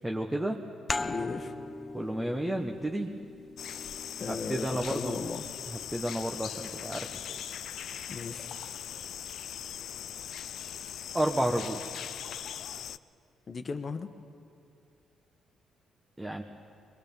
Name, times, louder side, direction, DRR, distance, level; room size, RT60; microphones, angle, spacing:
voice 1, 0.0-0.6 1.9-3.1 4.3-5.2 5.9-7.1 11.1-11.8 16.2-16.4, right 1 dB, 10° right, 2 dB, 1.1 m, -31 dB
sound 1, 0.9-6.2, left 2 dB, 20° left, 0.7 m, -40 dB
voice 2, 1.0-1.5 4.2-5.4 8.1-8.5 13.5-14.1, left 4 dB, 40° left, 8 dB, 1.2 m, -36 dB
sound 2, 3.6-13.0, left 9 dB, 70° left, 0.4 m, -40 dB
23.0 x 22.0 x 5.4 m, 2.5 s
cardioid pair, 90°, 0 cm